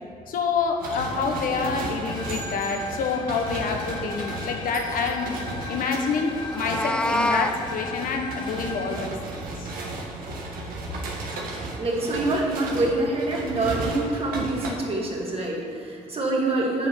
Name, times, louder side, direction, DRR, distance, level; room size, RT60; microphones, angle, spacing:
voice 1, 0.3-5.4 5.7-9.7, left 5 dB, 70° left, 3 dB, 1.3 m, -27 dB
sound 1, 0.8-14.7, right 2 dB, 80° right, 1.6 m, -35 dB
sound 2, 2.1-9.0, left 3 dB, 30° left, 1.5 m, -38 dB
Meow, 6.4-7.5, left 1 dB, 5° left, 0.4 m, -25 dB
voice 2, 11.8-16.9, right 2 dB, 40° right, -2 dB, 2.5 m, -26 dB
8.6 x 5.0 x 7.1 m, 2.5 s
supercardioid pair, 65°, 15 cm